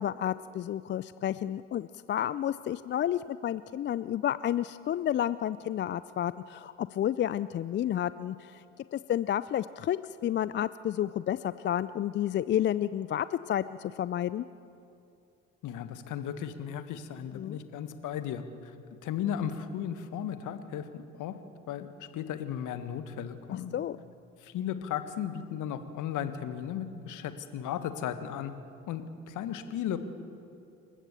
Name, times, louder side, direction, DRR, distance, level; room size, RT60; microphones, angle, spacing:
voice 1, 0.0-8.6 8.9-10.0 10.2-14.4 17.3-17.6 23.7-24.0, left 11 dB, 30° left, 16 dB, 0.4 m, -31 dB
voice 2, 15.6-18.7 19.0-21.3 21.7-23.7 24.4-28.5 28.9-30.0, left 9 dB, 55° left, 10 dB, 1.7 m, -35 dB
28.0 x 14.5 x 6.9 m, 2.6 s
figure-of-eight pair, 55°, 37 cm